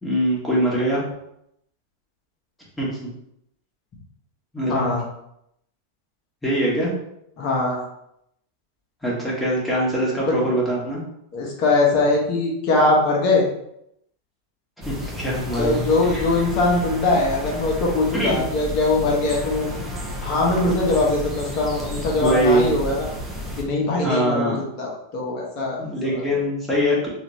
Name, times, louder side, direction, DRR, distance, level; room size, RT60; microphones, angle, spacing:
voice 1, 0.0-1.0 2.8-2.9 4.5-5.0 6.4-6.9 9.0-11.0 14.8-16.2 18.1-18.4 22.2-22.7 24.0-24.6 25.8-27.1, right 1 dB, 5° left, -5 dB, 1.5 m, -23 dB
voice 2, 4.7-5.0 7.4-7.9 10.2-10.4 11.3-13.4 15.6-19.7 20.2-23.1 23.6-25.8 26.1-26.2, left 2 dB, 40° left, -2 dB, 1.2 m, -21 dB
sound 1, 14.8-23.6, left 1 dB, 10° right, 0.9 m, -32 dB
4.0 x 2.7 x 3.1 m, 0.78 s
figure-of-eight pair, 90°, 0 cm